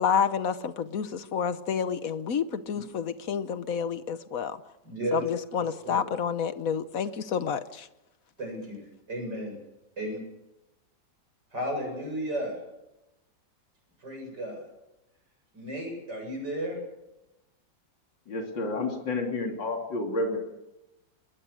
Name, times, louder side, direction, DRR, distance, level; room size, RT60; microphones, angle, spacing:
voice 1, 0.0-4.6 5.1-7.9, left 7 dB, 55° left, 13 dB, 1.2 m, -29 dB
voice 2, 4.8-5.3 5.8-6.0 8.4-8.7 9.1-9.5 10.0-10.2 11.5-12.6 14.0-14.7 15.5-16.8, right 1 dB, 60° right, 2 dB, 8.3 m, -33 dB
voice 3, 18.3-20.4, left 2 dB, 70° left, 2 dB, 3.5 m, -30 dB
21.5 x 21.5 x 6.4 m, 0.94 s
omnidirectional pair, 2.1 m